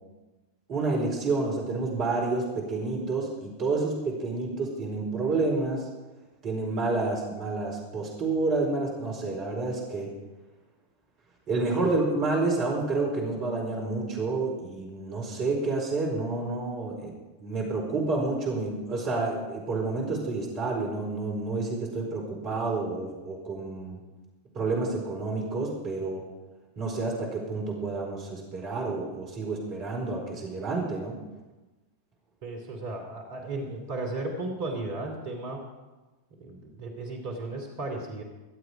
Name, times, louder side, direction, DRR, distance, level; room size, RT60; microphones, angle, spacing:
voice 1, 0.7-5.9 6.4-10.1 11.5-17.1 17.4-24.0 24.5-26.2 26.8-31.2, right 3 dB, 35° right, -1 dB, 4.6 m, -29 dB
voice 2, 32.4-35.6 36.4-38.2, right 2 dB, 50° right, 2 dB, 2.9 m, -35 dB
23.0 x 8.0 x 5.1 m, 1.2 s
figure-of-eight pair, 90°, 0 cm